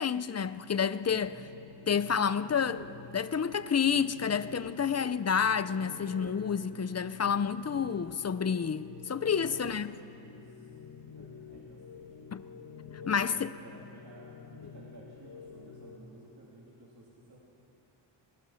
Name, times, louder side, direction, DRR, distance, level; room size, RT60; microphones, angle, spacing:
voice 1, 0.0-1.4 1.9-2.9 3.1-9.9 12.3-12.4 13.1-13.5, left 7 dB, 35° left, 0.5 m, -29 dB
sound 1, 1.2-16.0, left 5 dB, 50° left, 1.8 m, -48 dB
voice 2, 9.2-10.1 10.4-10.8 11.1-12.2 13.0-17.4, right 2 dB, 55° right, 3.0 m, -54 dB
26.5 x 20.0 x 5.8 m
wide cardioid pair, 140°, 45 cm